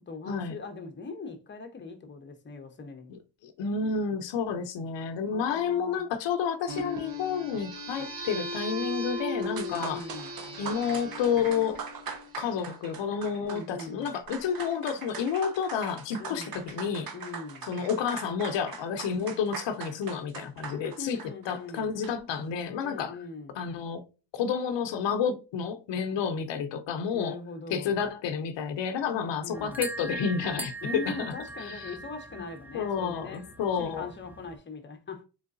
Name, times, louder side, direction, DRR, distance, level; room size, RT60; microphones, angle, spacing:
voice 1, 0.0-3.2 5.3-6.0 9.6-10.3 13.4-14.1 16.2-16.5 17.1-17.7 20.7-21.9 22.8-23.6 26.1-26.2 27.1-28.0 29.1-29.8 30.8-33.5 33.8-35.2, left 4 dB, 25° left, 0.9 m, -41 dB
voice 2, 3.1-10.0 10.6-11.8 12.4-17.1 17.7-21.2 21.5-23.2 23.5-24.0 24.3-27.4 27.7-31.3 31.6-31.9 32.7-34.1, left 6 dB, 80° left, 0.7 m, -30 dB
sound 1, 6.7-12.7, left 1 dB, 85° right, 1.1 m, -37 dB
sound 2, 9.4-22.4, right 6 dB, 55° right, 0.9 m, -42 dB
sound 3, 29.5-34.6, right 2 dB, 5° right, 0.3 m, -40 dB
3.7 x 3.2 x 2.5 m
cardioid pair, 85°, 43 cm